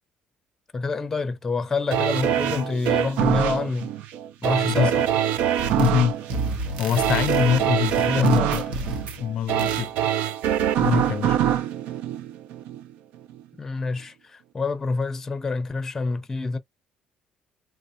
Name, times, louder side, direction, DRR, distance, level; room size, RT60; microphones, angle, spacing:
voice 1, 0.7-3.9 4.4-5.0 8.0-8.6 13.6-16.6, left 3 dB, 15° left, 0.6 m, -27 dB
sound 1, 1.9-12.9 13.3-13.4, right 10 dB, 80° right, 0.4 m, -24 dB
voice 2, 4.7-5.0 5.7-6.2 6.8-9.9 10.8-11.4, left 9 dB, 55° left, 0.4 m, -25 dB
sound 2, 5.6-6.0 6.3-9.2 9.6-9.9, right 2 dB, 65° right, 1.0 m, -32 dB
3.5 x 2.7 x 2.5 m
cardioid pair, 145°, 2 cm